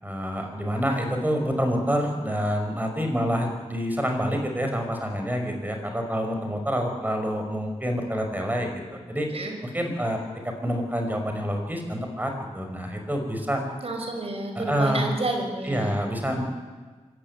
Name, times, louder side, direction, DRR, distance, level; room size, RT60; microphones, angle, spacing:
voice 1, 0.0-9.3 9.7-10.2 10.4-13.6 14.5-15.0 15.6-16.4, equal, 15° right, 3 dB, 5.2 m, -27 dB
voice 2, 13.8-15.9, right 2 dB, 55° right, 3 dB, 4.9 m, -30 dB
24.0 x 15.0 x 9.7 m, 1.4 s
wide cardioid pair, 85°, 12 cm